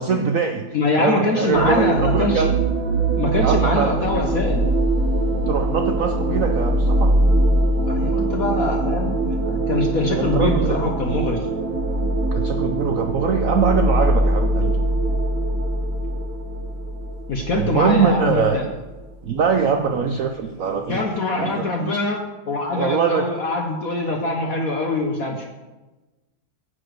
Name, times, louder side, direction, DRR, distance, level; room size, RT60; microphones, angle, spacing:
voice 1, 0.0-0.7 1.0-2.5 3.4-3.9 5.5-7.1 10.2-10.7 12.3-14.8 17.6-18.6 19.2-21.0 21.4-21.9 22.7-23.3, right 6 dB, 80° right, 5 dB, 0.7 m, -22 dB
voice 2, 0.7-2.5 3.1-4.7 7.7-11.5 17.3-18.7 20.9-22.2 22.5-25.5, left 2 dB, 50° left, 1 dB, 1.3 m, -23 dB
sound 1, 1.5-19.1, right 2 dB, 65° right, 1.8 m, -22 dB
10.0 x 4.8 x 7.9 m, 1.1 s
omnidirectional pair, 2.2 m